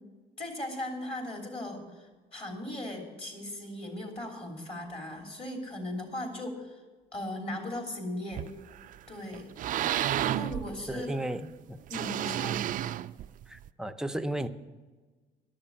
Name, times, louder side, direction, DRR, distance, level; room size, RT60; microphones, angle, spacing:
voice 1, 0.4-6.8 7.1-8.5 9.1-9.5 10.2-11.1 11.9-12.6, left 1 dB, 35° left, 3 dB, 3.1 m, -38 dB
sound 1, 8.3-9.0 9.3-11.2 11.9-13.7, right 12 dB, 50° right, 0.4 m, -31 dB
voice 2, 10.9-11.8 13.5-14.5, right 1 dB, 5° right, 8 dB, 0.6 m, -34 dB
12.0 x 6.6 x 8.8 m, 1.4 s
cardioid pair, 110°, 17 cm